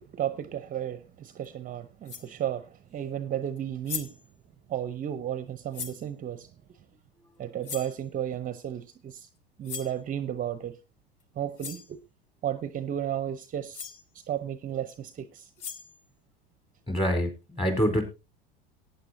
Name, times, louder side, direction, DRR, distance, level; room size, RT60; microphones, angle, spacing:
voice 1, 0.0-4.1 4.7-6.5 7.4-9.3 9.6-10.7 11.4-12.0 12.4-13.9 14.3-15.5, right 10 dB, 30° right, 0.8 m, -33 dB
sound 1, 1.4-1.5 2.0-2.4 3.6-3.7 3.8-4.3 5.7-6.0 7.6-8.0 9.6-10.0 11.2-11.3 11.6-11.9 13.4-13.5 13.7-14.0 15.4-16.0, left 7 dB, 70° left, 1.2 m, -39 dB
voice 2, 16.9-18.0, equal, 20° left, 4.1 m, -26 dB
18.5 x 9.4 x 2.7 m
hypercardioid pair, 80°, 29 cm